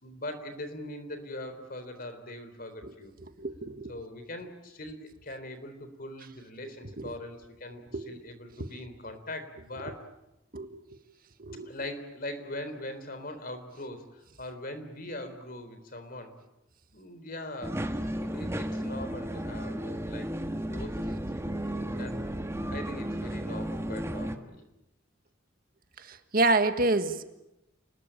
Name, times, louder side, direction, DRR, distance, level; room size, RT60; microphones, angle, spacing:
voice 1, 0.0-3.1 3.9-10.1 11.6-16.3 16.9-20.3 20.7-24.7, left 1 dB, 50° left, 10 dB, 3.7 m, -41 dB
voice 2, 3.4-3.9 7.0-7.1 7.9-8.2 8.6-8.7 10.5-10.8 11.4-11.7 26.0-27.2, right 2 dB, 50° right, 9 dB, 1.6 m, -28 dB
sound 1, 17.6-24.4, equal, 15° right, 1.5 m, -34 dB
29.0 x 20.0 x 8.9 m, 0.93 s
head